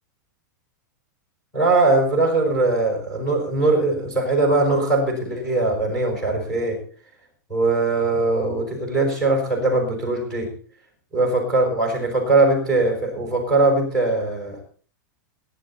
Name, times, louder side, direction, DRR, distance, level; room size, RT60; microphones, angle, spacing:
voice 1, 1.5-6.8 7.5-10.5 11.1-14.6, right 2 dB, 5° left, 0 dB, 5.2 m, -21 dB
18.0 x 11.0 x 4.3 m, 0.42 s
supercardioid pair, 180°, 11 cm